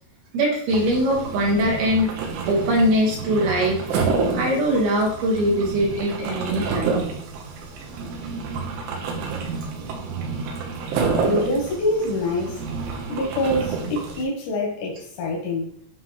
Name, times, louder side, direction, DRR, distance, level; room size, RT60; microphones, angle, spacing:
voice 1, 0.3-2.1 2.5-3.8 4.3-7.0, equal, 65° right, -3 dB, 3.4 m, -21 dB
sound 1, 0.7-14.2, right 4 dB, 80° right, 3.3 m, -29 dB
voice 2, 11.2-12.6 13.1-15.7, left 1 dB, 85° left, -2 dB, 3.4 m, -25 dB
10.0 x 3.9 x 3.2 m, 0.68 s
omnidirectional pair, 5.1 m